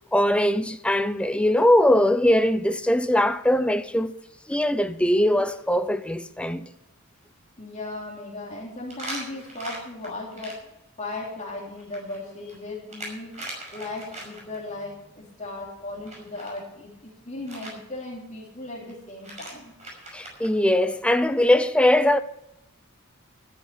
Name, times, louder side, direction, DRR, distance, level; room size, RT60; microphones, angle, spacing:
voice 1, 0.1-4.1 4.5-6.7 20.1-22.2, left 1 dB, 5° left, 0.6 m, -21 dB
sound 1, 4.0-4.2 4.5-4.6 5.1-5.2 5.5-5.6 8.9-10.5 11.8-14.6 16.0-16.6 17.5-17.7 18.9-19.0 19.2-20.5, right 2 dB, 35° right, 5.7 m, -39 dB
voice 2, 7.6-10.6 11.0-19.7, left 2 dB, 35° left, 3.1 m, -37 dB
14.0 x 10.0 x 5.7 m
head